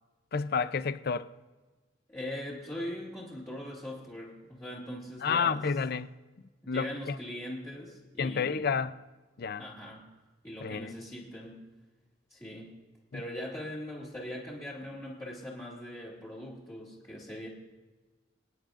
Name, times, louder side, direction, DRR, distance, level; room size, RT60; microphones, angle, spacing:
voice 1, 0.3-1.3 5.2-6.1 6.7-7.2 8.2-9.0 9.4-9.6 10.6-10.9 13.1-13.2, left 5 dB, 55° left, 0.5 m, -30 dB
voice 2, 2.1-5.6 6.6-8.7 9.6-10.1 10.4-11.6 12.3-12.7 13.1-17.5, left 1 dB, 15° left, 2.5 m, -41 dB
27.5 x 10.0 x 2.6 m
head